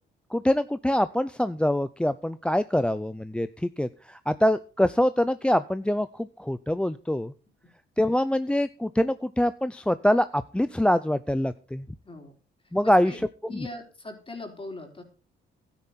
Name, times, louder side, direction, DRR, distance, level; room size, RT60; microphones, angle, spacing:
voice 1, 0.3-7.3 8.0-11.9 12.7-13.1, left 1 dB, 5° left, 13 dB, 0.5 m, -24 dB
voice 2, 12.6-13.2 13.5-15.0, left 2 dB, 25° left, 4 dB, 4.0 m, -41 dB
12.5 x 9.9 x 4.2 m, 0.37 s
cardioid pair, 90°, 20 cm